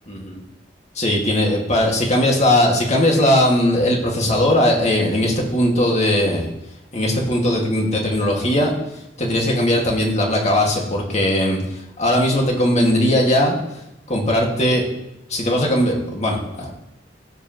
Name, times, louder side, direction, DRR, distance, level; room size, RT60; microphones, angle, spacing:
voice 1, 0.1-0.4 1.0-6.5 6.9-8.7 9.2-13.6 14.1-14.9 15.3-16.7, left 1 dB, 40° left, 0 dB, 2.1 m, -19 dB
15.0 x 7.8 x 3.1 m, 0.85 s
head